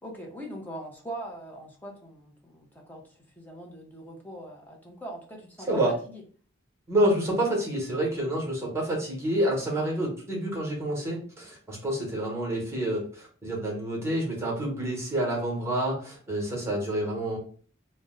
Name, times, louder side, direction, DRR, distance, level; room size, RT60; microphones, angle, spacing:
voice 1, 0.0-6.2, right 1 dB, 10° left, -1 dB, 0.7 m, -41 dB
voice 2, 6.9-17.4, right 1 dB, 15° right, -3 dB, 1.1 m, -28 dB
2.5 x 2.1 x 3.7 m, 0.43 s
head